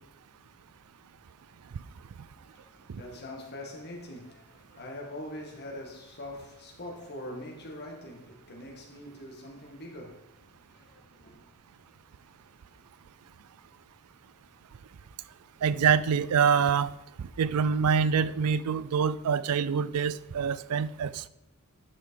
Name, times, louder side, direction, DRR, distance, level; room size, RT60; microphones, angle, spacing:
voice 1, 2.2-11.5, left 1 dB, 50° left, 1.9 m, -43 dB
voice 2, 15.6-16.9 17.4-21.3, right 6 dB, 85° right, 0.4 m, -25 dB
9.8 x 6.2 x 4.8 m
head